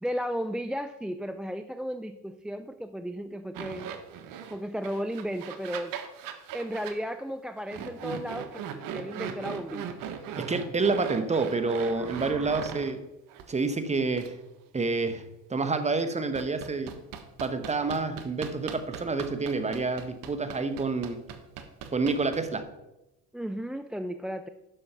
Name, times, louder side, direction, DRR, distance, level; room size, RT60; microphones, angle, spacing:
voice 1, 0.0-3.9 4.5-6.0 6.5-9.9 23.3-24.5, equal, ahead, 10 dB, 0.3 m, -34 dB
sound 1, 3.5-4.6 4.8-7.0 7.7-12.9 13.3-13.4 14.2-14.3 16.3-22.6, right 8 dB, 65° right, 1.4 m, -39 dB
voice 2, 10.4-13.0 13.5-14.3 14.7-15.2 15.5-16.9 17.4-21.2 21.9-22.6, right 3 dB, 20° right, 10 dB, 1.1 m, -28 dB
sound 2, 11.3-12.6, right 5 dB, 45° right, 2.4 m, -43 dB
10.0 x 6.3 x 5.9 m, 0.96 s
supercardioid pair, 95°, 36 cm